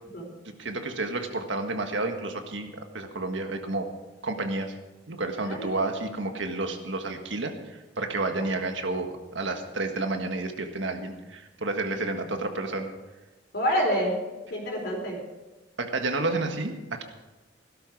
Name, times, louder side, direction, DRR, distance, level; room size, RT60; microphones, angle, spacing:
voice 1, 0.4-2.7 2.9-3.9 4.2-4.7 5.1-12.9 15.8-17.0, right 2 dB, 80° right, 5 dB, 1.6 m, -30 dB
voice 2, 5.4-5.7 13.5-14.2 14.5-15.2, equal, 60° left, -1 dB, 4.0 m, -27 dB
16.5 x 12.5 x 4.7 m, 1.1 s
head